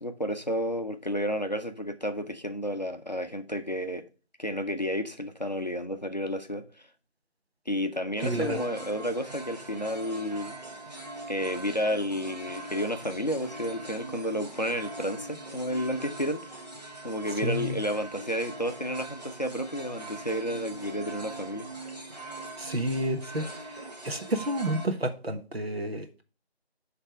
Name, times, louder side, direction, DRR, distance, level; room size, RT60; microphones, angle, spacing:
voice 1, 0.0-4.1 4.4-6.9 7.7-10.6 11.3-16.5 17.0-21.9, equal, 40° left, 0.6 m, -31 dB
sound 1, 8.2-24.9, right 2 dB, 40° right, 1.0 m, -42 dB
voice 2, 8.2-8.6 17.4-17.8 22.6-26.2, right 1 dB, 70° right, 1.3 m, -30 dB
7.6 x 3.4 x 6.0 m
figure-of-eight pair, 170°, 33 cm